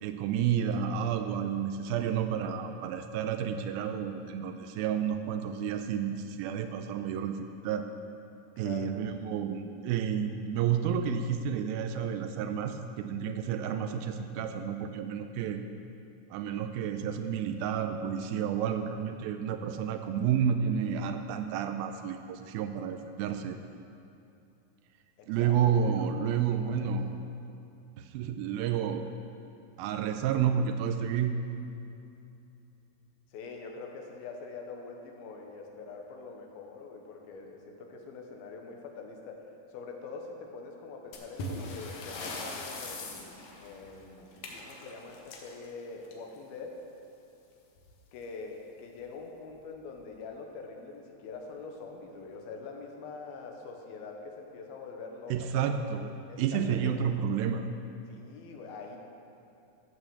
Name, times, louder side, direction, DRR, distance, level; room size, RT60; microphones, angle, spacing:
voice 1, 0.0-7.9 8.6-15.6 16.3-23.6 25.3-27.1 28.0-29.1 29.8-31.4 55.3-56.1 56.4-57.7, right 8 dB, 90° right, 7 dB, 2.4 m, -30 dB
voice 2, 8.6-8.9 25.2-27.0 33.3-39.4 39.7-46.8 48.1-55.7 56.3-57.2 58.1-59.0, left 4 dB, 85° left, 2 dB, 3.0 m, -44 dB
sound 1, 41.1-46.5 47.8-47.9 48.2-48.3 49.0-49.1 49.8-50.0, left 2 dB, 60° left, 2.3 m, -41 dB
14.5 x 6.2 x 7.2 m, 2.7 s
omnidirectional pair, 4.2 m